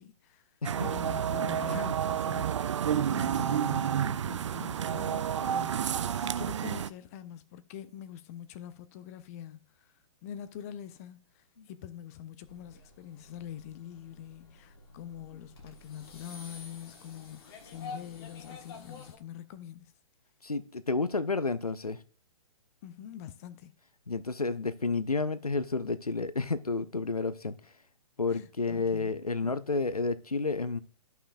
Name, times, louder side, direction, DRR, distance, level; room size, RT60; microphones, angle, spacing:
voice 1, 0.0-9.9 10.2-19.9 22.8-23.7 28.3-29.1, left 10 dB, 25° left, 0.4 m, -45 dB
sound 1, 0.6-6.9, right 9 dB, 55° right, 0.4 m, -30 dB
sound 2, 12.5-19.2, left 3 dB, 40° left, 1.4 m, -49 dB
voice 2, 20.4-22.0 24.1-27.7 28.2-30.8, left 3 dB, 85° left, 0.6 m, -31 dB
13.0 x 5.6 x 2.4 m
figure-of-eight pair, 120°, 19 cm